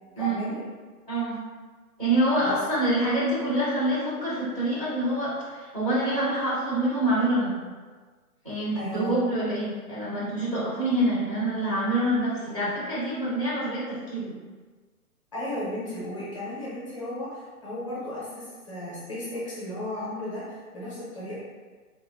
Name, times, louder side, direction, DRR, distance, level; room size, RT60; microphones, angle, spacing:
voice 1, 0.2-0.6 2.4-2.6 8.7-9.1 15.3-21.4, left 1 dB, 20° left, -8 dB, 0.7 m, -34 dB
voice 2, 1.1-1.4 2.0-7.5 8.4-14.3, right 1 dB, 25° right, -10 dB, 0.4 m, -26 dB
3.5 x 2.0 x 3.3 m, 1.4 s
hypercardioid pair, 155°, 46 cm